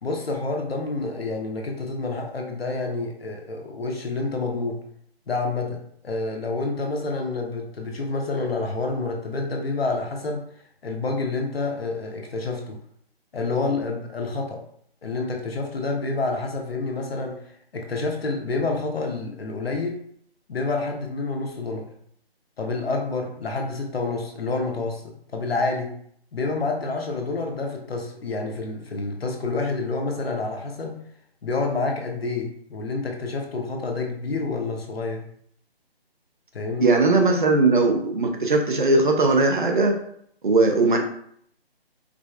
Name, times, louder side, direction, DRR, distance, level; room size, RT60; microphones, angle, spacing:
voice 1, 0.0-4.8 5.3-10.4 10.8-12.8 13.3-14.6 15.0-20.0 20.5-21.9 22.6-25.9 26.3-31.0 31.4-35.3 36.5-36.9, left 3 dB, 70° left, 2 dB, 0.8 m, -28 dB
voice 2, 36.8-40.0 40.4-41.0, right 3 dB, 50° right, 3 dB, 0.6 m, -19 dB
4.9 x 2.1 x 2.4 m, 0.66 s
figure-of-eight pair, 165°, 31 cm